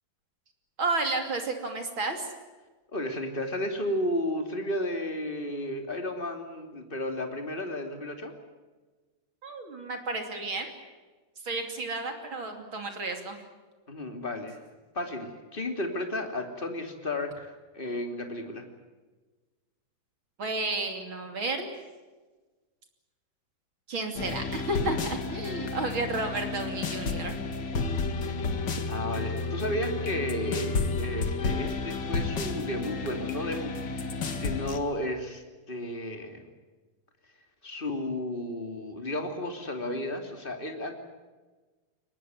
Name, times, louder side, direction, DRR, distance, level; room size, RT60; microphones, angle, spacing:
voice 1, 0.8-2.3 9.4-10.7 11.4-13.4 20.4-21.7 23.9-27.4, right 2 dB, 35° right, 5 dB, 3.1 m, -32 dB
voice 2, 2.9-8.3 13.9-14.6 14.9-18.6 28.9-33.7 34.3-36.4 37.6-41.0, left 1 dB, 15° left, 5 dB, 2.5 m, -33 dB
sound 1, 24.2-34.8, left 4 dB, 45° left, 1.6 m, -31 dB
23.0 x 20.0 x 9.4 m, 1.3 s
omnidirectional pair, 4.3 m